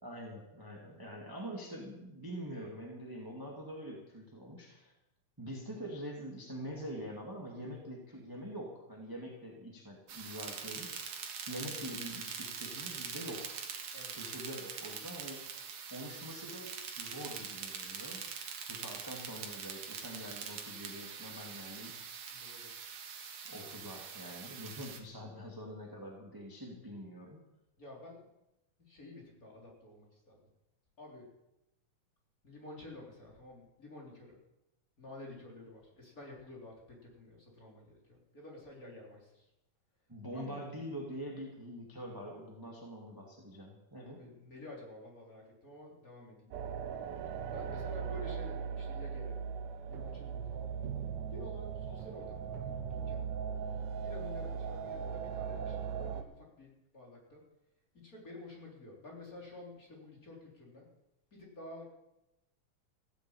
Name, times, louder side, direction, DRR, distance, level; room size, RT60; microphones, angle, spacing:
voice 1, 0.0-4.9 5.4-10.9 11.5-13.6 14.2-15.4 15.9-18.2 18.7-22.0 23.5-27.4 40.1-44.2, equal, 10° right, 0 dB, 1.8 m, -45 dB
sound 1, 10.1-25.0, right 6 dB, 65° right, 2.8 m, -43 dB
voice 2, 22.3-22.7 27.8-28.3 28.8-30.4 31.0-31.3 32.4-34.4 35.0-39.4 40.3-40.6 44.2-46.5 47.5-49.4 49.9-50.7 51.3-53.3 54.0-57.4 57.9-60.9 61.3-61.8, left 1 dB, 25° left, -2 dB, 4.0 m, -50 dB
sound 2, 46.5-56.2, right 7 dB, 80° right, 2.4 m, -39 dB
15.5 x 9.1 x 8.6 m, 0.91 s
omnidirectional pair, 3.6 m